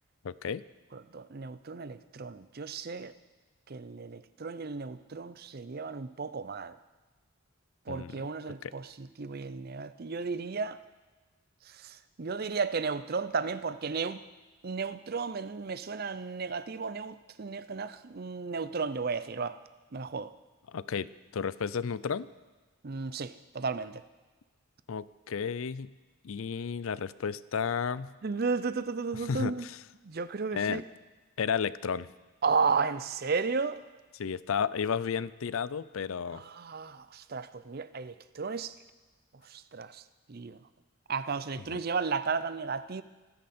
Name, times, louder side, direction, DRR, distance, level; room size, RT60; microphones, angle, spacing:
voice 1, 0.2-0.6 7.9-8.2 8.6-8.7 20.7-22.3 24.9-25.9 26.2-28.1 29.1-29.8 30.5-30.8 31.4-32.1 34.1-36.4 41.7-41.8, left 6 dB, 70° left, 18 dB, 0.5 m, -33 dB
voice 2, 0.9-3.1 3.7-6.8 7.9-10.8 11.7-14.2 14.6-19.6 19.9-20.3 22.8-24.0 28.2-29.7 30.0-30.8 32.4-33.8 36.3-38.7 39.5-40.0 40.3-40.6 41.1-43.0, right 4 dB, 45° right, 14 dB, 0.5 m, -34 dB
25.0 x 10.0 x 4.3 m, 1.3 s
head